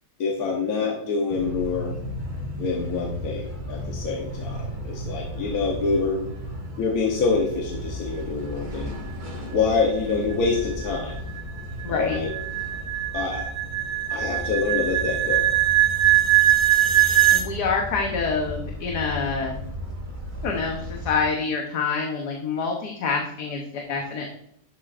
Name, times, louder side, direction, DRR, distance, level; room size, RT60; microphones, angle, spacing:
voice 1, 0.2-1.9 2.6-6.2 6.8-8.9 9.5-11.2 11.9-12.3 13.1-13.5 14.1-15.5, left 4 dB, 70° left, 0 dB, 1.5 m, -26 dB
sound 1, 1.3-21.1, equal, 30° right, 1.9 m, -35 dB
sound 2, 10.3-17.5, right 13 dB, 60° right, 1.2 m, -21 dB
voice 2, 11.8-12.2 17.0-19.6 20.4-24.3, left 4 dB, 90° left, 1 dB, 1.6 m, -27 dB
11.5 x 7.6 x 2.5 m, 0.71 s
omnidirectional pair, 1.7 m